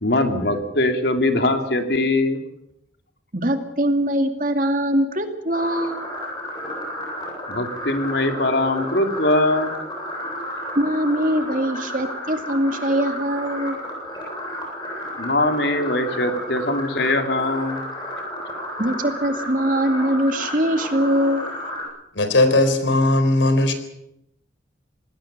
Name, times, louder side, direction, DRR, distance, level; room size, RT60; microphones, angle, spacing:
voice 1, 0.0-2.4 7.5-9.7 15.2-17.8, left 2 dB, 65° left, 6 dB, 3.1 m, -21 dB
voice 2, 3.3-6.0 10.8-13.8 18.8-21.4, equal, 45° right, 6 dB, 2.5 m, -22 dB
sound 1, 5.5-21.8, left 1 dB, 25° left, 7.8 m, -32 dB
voice 3, 22.2-23.7, left 2 dB, 90° left, 9 dB, 4.1 m, -18 dB
27.0 x 19.5 x 6.9 m, 0.82 s
head